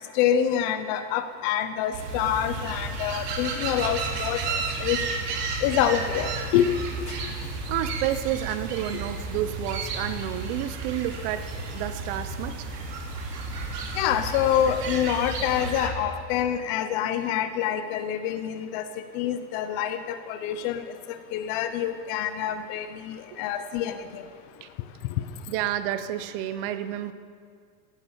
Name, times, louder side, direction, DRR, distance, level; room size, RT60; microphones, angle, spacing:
voice 1, 0.2-4.4 4.8-5.0 5.6-6.7 14.0-18.8 19.1-20.8 21.3-24.2, left 10 dB, 30° left, 10 dB, 0.5 m, -26 dB
sound 1, 1.9-15.9, right 3 dB, 80° right, 3.7 m, -32 dB
voice 2, 7.7-11.5 11.7-12.7 20.5-20.7 24.6-24.7 25.5-27.1, right 12 dB, 35° right, 12 dB, 0.6 m, -30 dB
16.5 x 9.9 x 7.1 m, 2.2 s
supercardioid pair, 145°, 47 cm